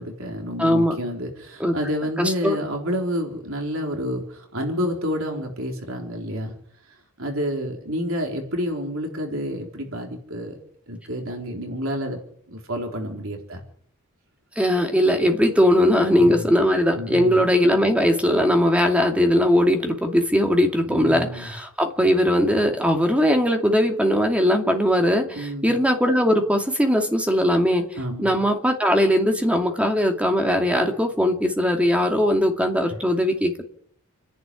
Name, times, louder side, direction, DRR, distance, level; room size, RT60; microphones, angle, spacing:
voice 1, 0.0-6.5 7.2-10.6 10.9-12.2 12.5-13.6 16.2-16.5 16.9-17.4 20.8-21.5 25.3-25.8 28.0-28.4, equal, 60° right, 2 dB, 4.0 m, -29 dB
voice 2, 0.6-1.0 1.6-1.7 2.2-2.6 14.6-27.9 28.2-33.6, equal, 5° right, 3 dB, 2.5 m, -20 dB
29.0 x 11.0 x 9.9 m, 0.66 s
head